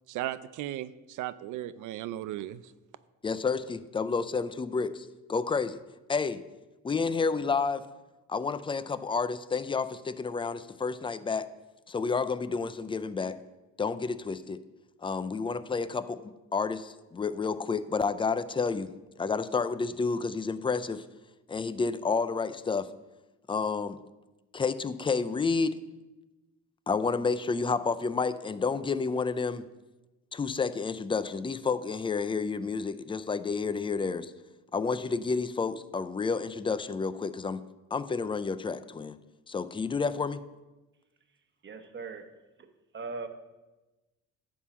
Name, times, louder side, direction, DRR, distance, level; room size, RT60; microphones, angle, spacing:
voice 1, 0.1-2.6, right 13 dB, 85° right, 15 dB, 0.5 m, -36 dB
voice 2, 3.2-5.8 6.1-6.4 6.8-7.8 8.3-11.5 11.9-13.4 13.8-14.6 15.0-18.9 19.2-21.0 21.5-22.9 23.5-24.0 24.5-25.8 26.9-29.7 30.3-34.3 34.7-37.6 37.9-39.2 39.5-40.4, left 4 dB, 15° left, 13 dB, 0.4 m, -30 dB
voice 3, 41.6-42.2 42.9-43.3, right 4 dB, 40° right, 7 dB, 1.1 m, -38 dB
11.0 x 3.7 x 7.2 m, 1.1 s
cardioid pair, 90°, 30 cm